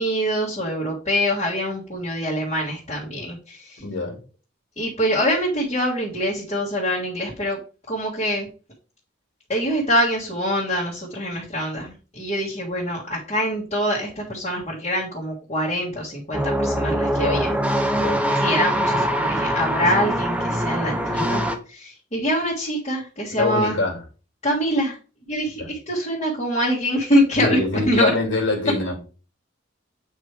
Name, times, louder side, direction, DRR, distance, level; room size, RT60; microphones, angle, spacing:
voice 1, 0.0-3.8 4.8-7.6 7.9-8.5 9.5-17.6 18.3-23.8 24.4-25.0 25.3-27.6 27.9-28.1, equal, 35° left, -4 dB, 1.7 m, -24 dB
voice 2, 3.8-4.2 17.2-17.5 17.9-18.2 23.3-24.0 25.6-25.7 27.4-29.0, left 3 dB, 75° left, 1 dB, 2.2 m, -24 dB
sound 1, 16.3-21.6, equal, 5° right, 0.8 m, -23 dB
8.2 x 3.3 x 4.6 m, 0.35 s
head